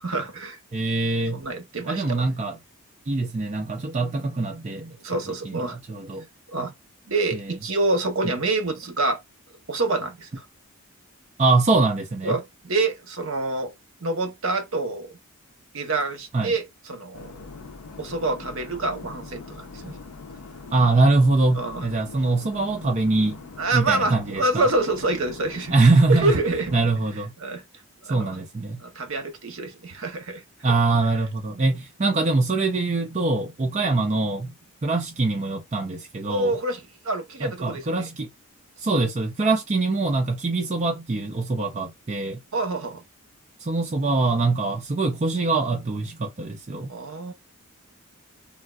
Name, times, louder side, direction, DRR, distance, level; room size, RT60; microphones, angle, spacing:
voice 1, 0.0-0.6 1.3-2.2 5.0-5.8 6.5-6.7 7.1-9.2 9.7-10.4 12.2-13.7 14.0-15.2 15.7-17.3 18.0-20.0 21.5-21.9 23.6-25.7 26.1-26.7 27.4-27.6 28.1-28.4 28.8-30.4 36.3-37.9 42.5-43.0 46.9-47.3, right 2 dB, 65° right, 0.9 m, -27 dB
voice 2, 0.7-1.4 1.9-2.6 3.1-4.9 5.4-6.2 11.4-12.4 16.3-16.5 20.7-23.4 23.7-24.7 25.7-26.4 26.7-27.3 28.1-28.8 30.6-34.5 34.8-36.5 37.4-38.3 38.8-42.4 43.6-46.9, right 3 dB, 30° right, 0.4 m, -23 dB
sound 1, 17.1-26.8, left 4 dB, 80° left, 0.5 m, -42 dB
3.5 x 2.3 x 2.3 m
head